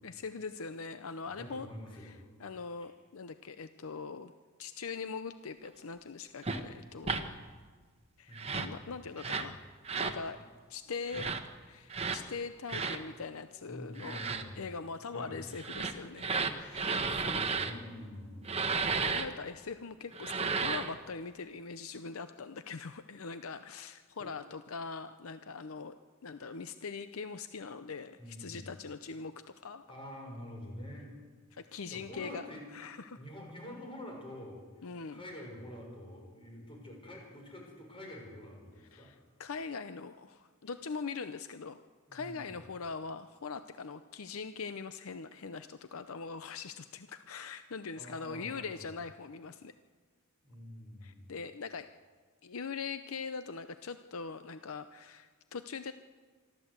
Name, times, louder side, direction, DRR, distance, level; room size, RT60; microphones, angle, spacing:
voice 1, 0.0-1.7 1.9-4.3 4.6-7.3 8.2-9.6 9.9-10.4 10.7-11.4 11.7-14.3 14.6-17.0 18.8-26.0 26.2-29.8 31.5-32.5 32.7-33.2 34.8-35.2 38.9-41.8 42.1-49.7 51.0-51.9 52.4-55.9, left 5 dB, 70° left, 11 dB, 0.7 m, -42 dB
voice 2, 1.4-2.1 8.3-9.0 9.3-9.5 9.9-10.1 13.7-14.6 15.1-15.4 16.8-18.6 24.2-24.3 28.2-28.7 29.9-31.1 31.9-32.6 33.1-34.6 35.1-39.1 42.1-42.5 48.0-48.8 50.4-51.3, left 1 dB, 25° left, 0 dB, 5.8 m, -47 dB
sound 1, 6.4-6.6 7.0-7.2 8.3-8.7 9.2-9.5 9.8-10.2 11.1-11.4 11.9-12.2 12.7-13.0 14.0-14.4 15.5-17.7 18.4-19.2 20.1-20.9, right 4 dB, 30° right, 1.2 m, -33 dB
25.0 x 13.0 x 8.1 m, 1.5 s
head